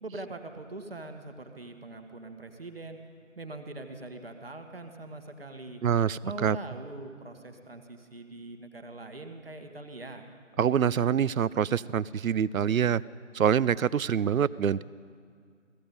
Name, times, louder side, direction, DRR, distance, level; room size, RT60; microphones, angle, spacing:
voice 1, 0.0-3.0 3.4-5.8 6.2-10.3, right 2 dB, 45° right, 5 dB, 1.2 m, -42 dB
voice 2, 5.8-6.6 10.6-13.0 13.3-14.8, right 8 dB, 90° right, 20 dB, 0.5 m, -25 dB
16.0 x 15.0 x 5.3 m, 2.2 s
figure-of-eight pair, 165°, 40 cm